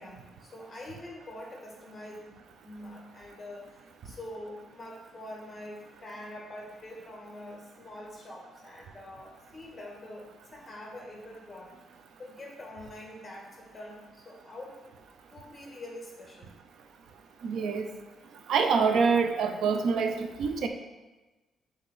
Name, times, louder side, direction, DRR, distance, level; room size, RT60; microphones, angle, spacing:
voice 1, 0.0-14.8 15.3-16.5, left 1 dB, 20° left, -1 dB, 1.8 m, -45 dB
voice 2, 17.4-17.9 18.5-20.7, right 5 dB, 70° right, 6 dB, 0.7 m, -26 dB
6.5 x 3.1 x 5.7 m, 1.1 s
cardioid pair, 90°, 0 cm